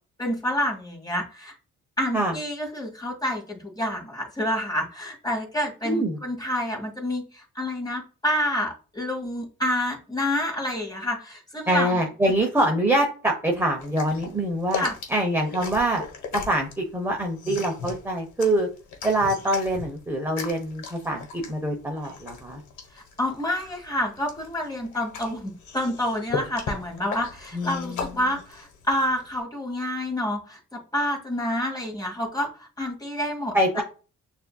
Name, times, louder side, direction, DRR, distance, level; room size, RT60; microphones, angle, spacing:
voice 1, 0.2-1.5 2.0-12.0 14.7-14.9 23.2-30.6 30.9-33.5, left 1 dB, 15° left, 1 dB, 1.7 m, -28 dB
voice 2, 5.8-6.2 11.7-16.0 16.3-18.7 19.0-22.6 27.5-28.1 33.5-33.8, right 1 dB, 10° right, 1 dB, 0.8 m, -25 dB
sound 1, 13.8-29.4, left 5 dB, 70° left, 1.2 m, -37 dB
6.3 x 2.7 x 2.3 m, 0.35 s
cardioid pair, 90°, 30 cm